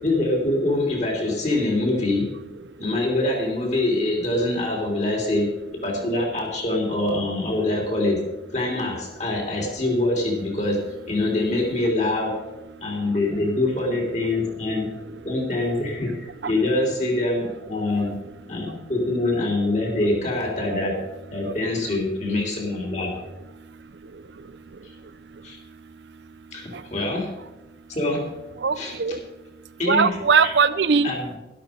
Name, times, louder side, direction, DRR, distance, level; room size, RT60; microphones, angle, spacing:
voice 1, 0.0-2.3 2.8-8.2 8.5-12.4 12.8-14.9 15.2-18.1 18.5-21.0 21.3-23.1 25.4-25.6 26.5-27.3 27.9-28.3 28.8-29.2 29.8-30.1 30.4-30.5 31.0-31.3, left 2 dB, 40° left, 0 dB, 3.4 m, -24 dB
voice 2, 28.6-29.2 29.9-31.1, right 5 dB, 75° right, 14 dB, 0.6 m, -20 dB
12.5 x 12.0 x 5.2 m, 1.0 s
head